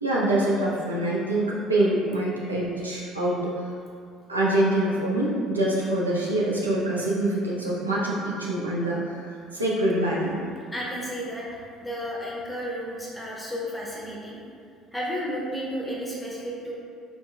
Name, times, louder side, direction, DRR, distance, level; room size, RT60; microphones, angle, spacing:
voice 1, 0.0-3.7 4.3-10.4, right 1 dB, 85° right, -6 dB, 0.4 m, -25 dB
voice 2, 10.7-14.4 14.9-16.7, equal, 10° left, -5 dB, 0.8 m, -32 dB
4.2 x 2.9 x 2.2 m, 2.3 s
figure-of-eight pair, 55°, 0 cm